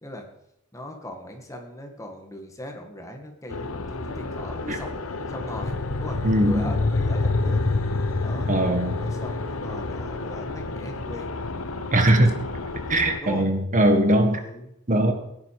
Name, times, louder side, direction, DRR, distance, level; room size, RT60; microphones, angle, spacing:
voice 1, 0.7-5.0 5.3-6.2 6.5-7.6 8.2-8.6 9.0-11.3 13.2-13.5 14.3-14.7, left 1 dB, 15° left, 3 dB, 2.0 m, -39 dB
sound 1, 3.5-13.2, left 3 dB, 75° left, 1.1 m, -28 dB
voice 2, 6.2-6.7 8.5-9.0 11.9-12.3 12.9-14.4 14.9-15.1, right 1 dB, 35° right, 5 dB, 1.7 m, -20 dB
16.5 x 10.5 x 5.0 m, 0.81 s
head